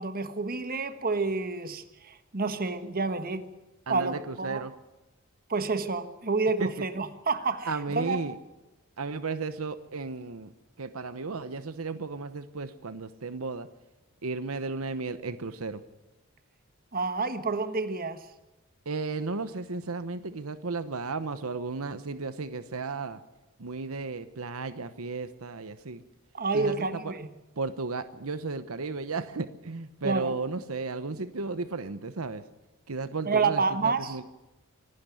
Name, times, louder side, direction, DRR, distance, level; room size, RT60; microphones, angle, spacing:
voice 1, 0.0-3.5 3.9-4.6 5.5-7.7 7.9-8.2 16.9-18.2 26.3-27.3 30.0-30.3 33.3-34.1, right 4 dB, 45° right, 10 dB, 1.4 m, -29 dB
voice 2, 3.9-4.7 6.6-6.9 7.7-8.4 9.0-10.5 10.8-13.7 14.2-15.8 18.8-23.2 23.6-26.0 26.5-27.1 27.6-32.4 32.9-34.2, right 3 dB, 85° right, 12 dB, 1.0 m, -34 dB
25.5 x 12.0 x 9.2 m, 1.0 s
head